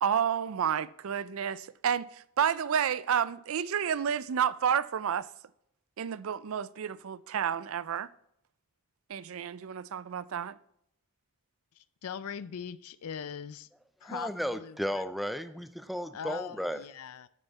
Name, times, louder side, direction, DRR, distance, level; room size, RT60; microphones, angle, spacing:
voice 1, 0.0-5.3 6.0-8.1 9.1-10.5, right 8 dB, 65° right, 0.4 m, -30 dB
voice 2, 11.8-13.7 14.0-15.0 16.1-17.3, left 7 dB, 80° left, 0.4 m, -41 dB
voice 3, 14.0-16.8, equal, ahead, 0.4 m, -34 dB
9.2 x 8.9 x 4.1 m
head